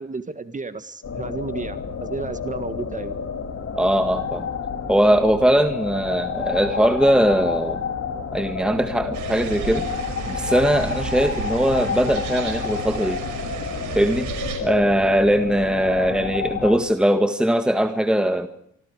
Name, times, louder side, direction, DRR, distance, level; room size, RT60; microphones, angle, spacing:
voice 1, 0.0-3.2, right 3 dB, 25° right, 11 dB, 1.6 m, -32 dB
sound 1, 1.0-16.8, left 6 dB, 55° left, 5.1 m, -30 dB
voice 2, 3.7-4.5 4.9-7.8 8.3-9.9 10.3-13.2 14.0-14.3 14.6-18.5, equal, 5° right, 8 dB, 1.7 m, -20 dB
sound 2, 9.1-14.6, right 7 dB, 85° right, 5.9 m, -33 dB
26.0 x 25.5 x 4.9 m, 0.68 s
cardioid pair, 90°, 30 cm